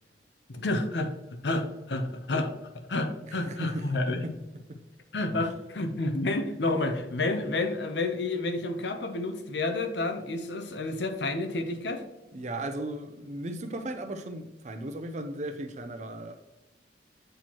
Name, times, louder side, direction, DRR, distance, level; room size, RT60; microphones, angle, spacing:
voice 1, 0.5-1.1 1.4-2.5 2.9-4.2 5.1-12.0, left 2 dB, 70° left, 0.7 m, -30 dB
voice 2, 3.2-4.8 12.3-16.4, right 1 dB, 40° right, 0.6 m, -36 dB
7.8 x 4.3 x 3.0 m
head